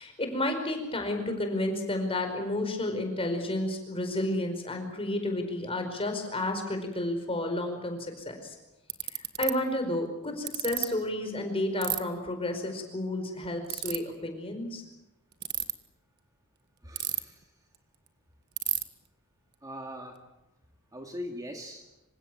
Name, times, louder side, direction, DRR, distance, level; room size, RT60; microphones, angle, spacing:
voice 1, 0.0-8.6 9.1-14.8, left 1 dB, 25° left, 5 dB, 4.9 m, -31 dB
Ratchet pawl, 8.2-8.3 8.9-9.5 10.5-10.8 11.8-12.0 13.7-14.0 15.3-15.7 17.0-17.4 17.7-17.8 18.1-18.2 18.6-18.8, right 13 dB, 50° right, 1.5 m, -30 dB
voice 2, 16.8-17.5 19.6-20.2 20.9-21.8, equal, 15° right, 3 dB, 2.3 m, -41 dB
26.5 x 16.5 x 9.3 m, 0.96 s
head